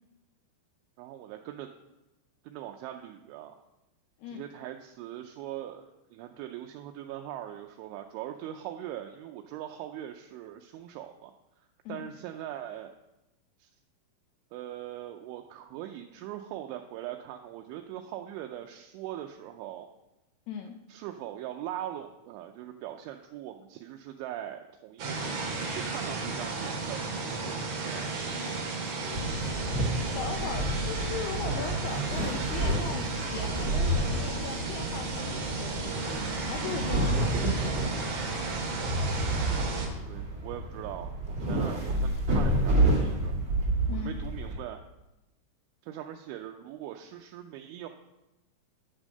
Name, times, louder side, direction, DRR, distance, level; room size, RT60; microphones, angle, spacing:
voice 1, 1.0-1.7 2.4-3.6 4.3-11.3 11.9-12.9 13.6-13.7 14.5-19.9 20.9-28.2 39.4-43.4 43.9-44.8 45.8-47.9, right 12 dB, 85° right, 4 dB, 3.0 m, -41 dB
voice 2, 20.5-20.8 30.1-38.0 43.9-44.2, left 7 dB, 85° left, 4 dB, 2.3 m, -39 dB
sound 1, 25.0-39.9, right 3 dB, 50° right, 2.8 m, -34 dB
sound 2, 29.1-44.6, right 1 dB, 35° right, 2.3 m, -30 dB
10.5 x 6.2 x 6.5 m, 0.95 s
omnidirectional pair, 5.5 m